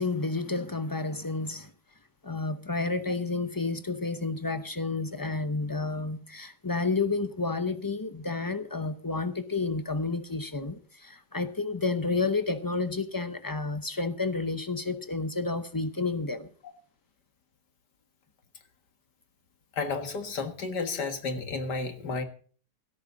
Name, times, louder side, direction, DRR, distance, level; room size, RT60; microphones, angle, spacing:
voice 1, 0.0-1.7 2.2-16.5, left 3 dB, 35° left, 0.3 m, -30 dB
voice 2, 19.7-22.2, left 4 dB, 70° left, 2.3 m, -32 dB
16.5 x 13.0 x 4.0 m
omnidirectional pair, 1.9 m